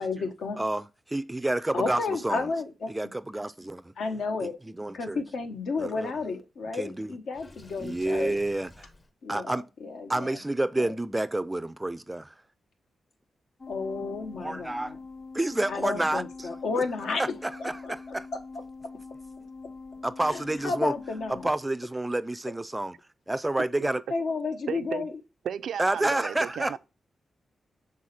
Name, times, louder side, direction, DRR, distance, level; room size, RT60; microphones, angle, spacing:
voice 1, 0.0-0.6 1.7-2.9 4.0-4.6 4.9-8.4 9.2-10.4 10.8-11.0 13.7-15.0 15.7-17.2 17.6-17.9 20.3-21.5 24.1-25.1, left 4 dB, 80° left, 1.1 m, -32 dB
voice 2, 0.6-2.4 2.9-3.9 4.4-4.5 4.8-5.2 5.8-6.1 6.8-7.1 7.8-8.9 9.3-9.7 10.1-12.3 14.4-14.9 15.3-16.2 17.2-17.3 17.6-18.3 20.0-20.9 21.3-22.9 23.3-24.0 25.8-26.8, right 1 dB, 15° right, 0.3 m, -29 dB
Water / Sink (filling or washing), 7.3-9.1, left 2 dB, 30° left, 0.8 m, -51 dB
sound 1, 13.6-21.5, left 4 dB, 50° left, 2.3 m, -44 dB
voice 3, 24.7-25.1 25.4-26.8, right 8 dB, 85° right, 0.3 m, -34 dB
6.3 x 3.9 x 4.1 m
wide cardioid pair, 110°, 0 cm